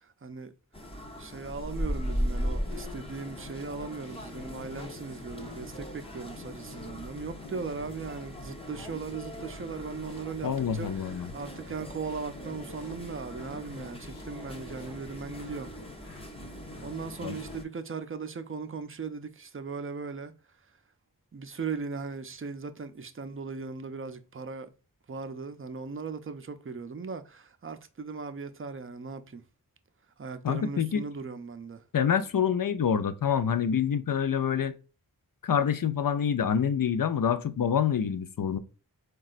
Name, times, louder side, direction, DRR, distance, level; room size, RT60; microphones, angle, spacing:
voice 1, 0.0-0.5 1.2-15.7 16.8-20.3 21.3-24.7 25.1-29.4 30.2-31.8, right 4 dB, 35° right, 0.4 m, -38 dB
sound 1, 0.7-17.6, equal, 15° left, 0.6 m, -39 dB
sound 2, 1.6-17.6, left 2 dB, 80° left, 0.9 m, -50 dB
voice 2, 10.4-11.3 17.2-17.3 30.4-31.0 31.9-34.7 35.4-38.6, left 8 dB, 65° left, 0.5 m, -26 dB
3.9 x 2.3 x 2.4 m
wide cardioid pair, 50°, 37 cm